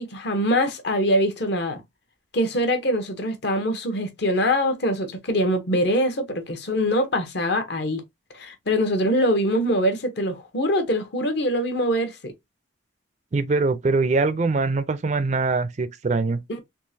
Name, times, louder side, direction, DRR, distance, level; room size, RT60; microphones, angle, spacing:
voice 1, 0.0-1.8 2.3-8.0 8.3-12.3 16.5-16.6, equal, 55° left, 0.9 m, -23 dB
voice 2, 13.3-16.4, right 3 dB, 35° right, 0.4 m, -23 dB
3.6 x 2.8 x 2.6 m
head